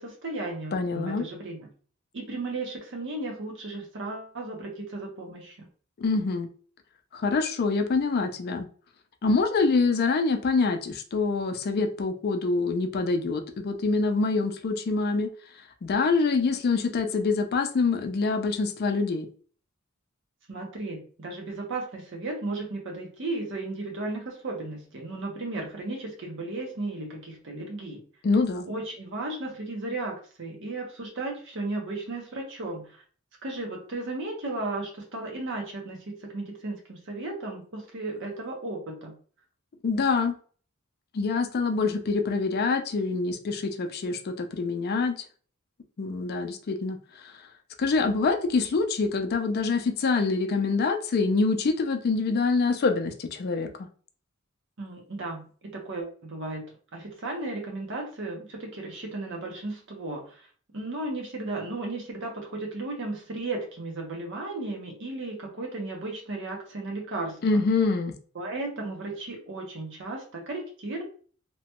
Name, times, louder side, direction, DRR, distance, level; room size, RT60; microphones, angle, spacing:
voice 1, 0.0-1.7 2.1-5.7 20.5-28.0 28.6-33.0 33.4-39.2 54.8-60.5 60.7-67.6 68.3-71.0, right 2 dB, 60° right, 1 dB, 0.9 m, -35 dB
voice 2, 0.7-1.3 6.0-6.5 7.1-8.7 9.2-15.3 15.8-19.3 28.2-28.7 39.8-40.3 41.1-45.2 46.0-47.0 47.8-53.7 67.4-68.2, left 4 dB, 45° left, 7 dB, 0.4 m, -25 dB
2.9 x 2.2 x 2.9 m, 0.43 s
head